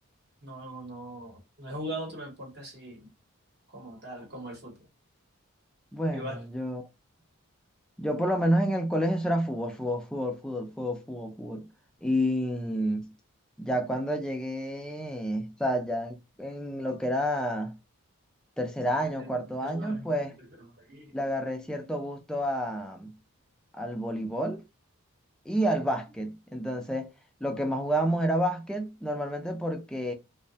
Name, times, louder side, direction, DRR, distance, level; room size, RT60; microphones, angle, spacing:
voice 1, 0.4-3.1 3.7-4.8 6.1-6.4 19.1-20.1 20.4-21.1, right 1 dB, 45° right, 0.9 m, -41 dB
voice 2, 5.9-6.8 8.0-11.7 12.0-13.1 13.6-17.8 18.6-20.4 21.1-23.2 23.7-24.6 25.5-27.1 27.4-30.1, equal, 5° left, 0.3 m, -29 dB
2.6 x 2.0 x 2.7 m
head